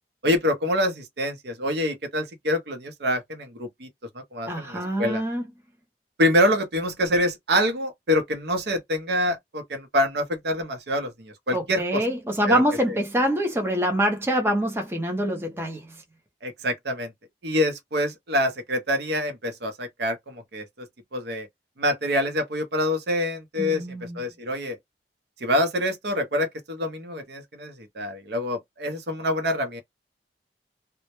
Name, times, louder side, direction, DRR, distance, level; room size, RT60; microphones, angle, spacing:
voice 1, 0.2-3.9 4.1-5.2 6.2-12.0 12.5-12.6 16.4-17.1 17.4-21.5 21.8-24.8 25.4-29.8, left 1 dB, 70° right, 0.7 m, -26 dB
voice 2, 4.5-5.5 11.5-16.0 23.6-24.2, equal, 15° right, 0.5 m, -25 dB
2.1 x 2.1 x 2.9 m
head